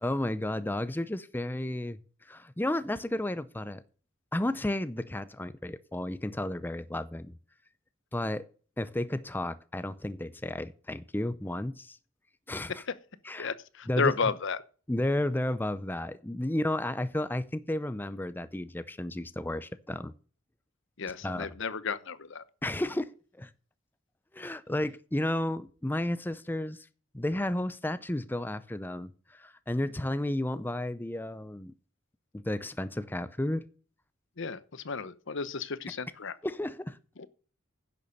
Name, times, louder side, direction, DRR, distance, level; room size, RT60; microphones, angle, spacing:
voice 1, 0.0-3.8 4.3-7.4 8.1-8.4 8.8-12.0 12.5-12.8 13.2-13.5 13.9-14.1 14.9-20.1 21.2-21.5 22.6-23.1 23.3-23.5 24.3-26.9 27.1-31.7 32.3-33.7 36.4-37.0, left 1 dB, 10° left, 0.5 m, -32 dB
voice 2, 13.4-14.6 21.0-22.4 34.4-36.4 37.2-37.3, left 5 dB, 65° left, 0.8 m, -33 dB
10.5 x 6.9 x 6.5 m
head